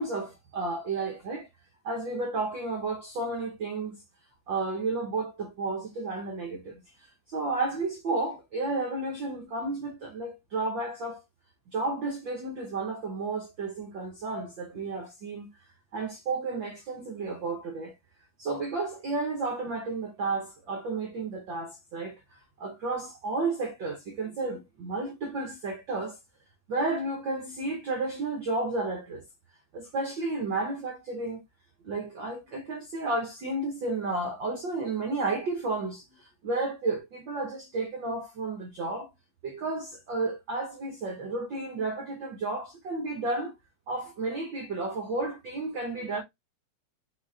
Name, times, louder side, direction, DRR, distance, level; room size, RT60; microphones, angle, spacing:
voice 1, 0.0-1.5 1.8-4.0 4.5-11.2 11.7-15.5 15.9-17.9 18.4-22.2 22.6-26.2 26.7-29.2 29.7-31.4 31.8-39.1 39.4-43.5 43.9-46.2, right 3 dB, 85° right, 1.0 m, -32 dB
6.2 x 2.7 x 2.6 m
omnidirectional pair, 3.6 m